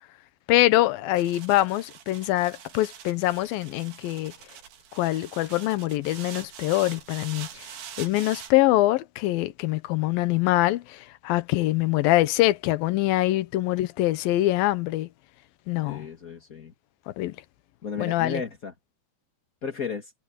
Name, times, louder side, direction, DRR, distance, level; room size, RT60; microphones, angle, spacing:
voice 1, 0.5-4.3 5.0-7.7 8.0-15.1 15.7-16.1 17.2-17.3 18.0-18.4, left 16 dB, 75° left, 2.6 m, -24 dB
sound 1, 1.2-8.5, right 9 dB, 90° right, 4.3 m, -44 dB
voice 2, 15.8-16.7 17.8-18.7 19.6-20.1, left 5 dB, 35° left, 1.5 m, -34 dB
omnidirectional pair, 4.4 m